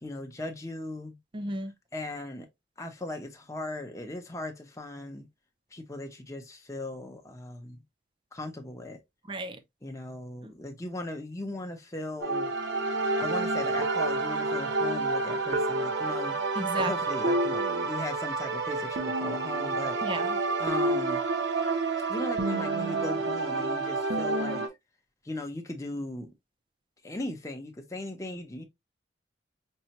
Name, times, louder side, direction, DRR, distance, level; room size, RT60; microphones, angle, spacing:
voice 1, 0.0-1.2 1.9-2.5 2.8-5.3 5.7-7.8 8.3-9.0 9.8-12.5 13.2-16.4 16.8-20.0 20.6-21.2 22.1-24.7 25.2-26.3 27.0-28.6, left 2 dB, 15° left, 0.8 m, -38 dB
voice 2, 1.3-1.7 9.3-9.6 10.4-10.5 16.6-16.9 20.0-20.4, right 2 dB, 25° right, 0.5 m, -33 dB
sound 1, 12.2-24.7, right 3 dB, 65° right, 0.8 m, -29 dB
5.4 x 2.2 x 2.9 m
head